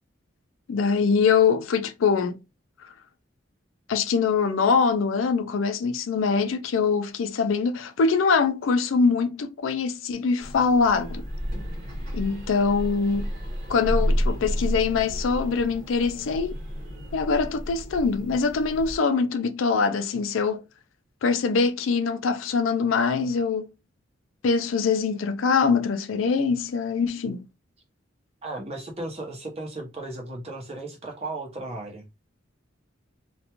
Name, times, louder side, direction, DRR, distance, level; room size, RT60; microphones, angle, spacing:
voice 1, 0.7-2.4 3.9-11.2 12.1-13.3 13.7-16.5 17.1-20.6 21.2-23.7 24.4-27.4, left 5 dB, 90° left, 0.4 m, -23 dB
sound 1, 10.4-19.0, equal, 50° right, 1.1 m, -31 dB
voice 2, 28.4-32.1, right 2 dB, 30° right, 0.8 m, -35 dB
2.5 x 2.2 x 2.9 m
head